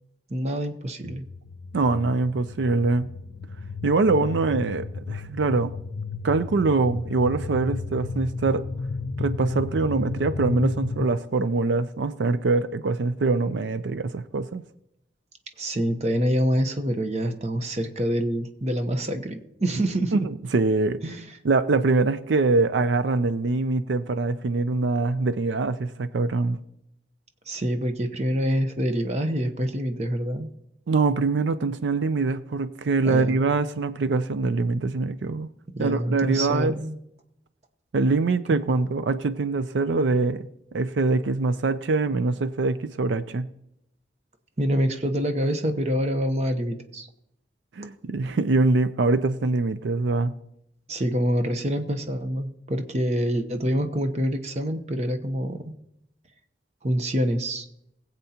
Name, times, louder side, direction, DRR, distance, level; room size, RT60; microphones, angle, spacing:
voice 1, 0.3-1.2 15.6-20.2 21.0-21.3 27.5-30.5 33.0-33.4 35.7-37.0 38.5-38.6 44.6-47.1 50.9-55.7 56.8-57.6, equal, 35° right, 7 dB, 0.9 m, -26 dB
sound 1, 1.0-11.1, left 3 dB, 80° left, 0.6 m, -33 dB
voice 2, 1.7-3.1 3.8-5.7 6.2-8.6 9.2-14.6 20.1-21.0 21.4-26.6 30.9-35.5 35.8-36.7 37.9-40.5 40.7-43.5 47.8-50.3, right 3 dB, 85° right, 13 dB, 0.5 m, -23 dB
21.0 x 8.2 x 2.9 m, 0.81 s
head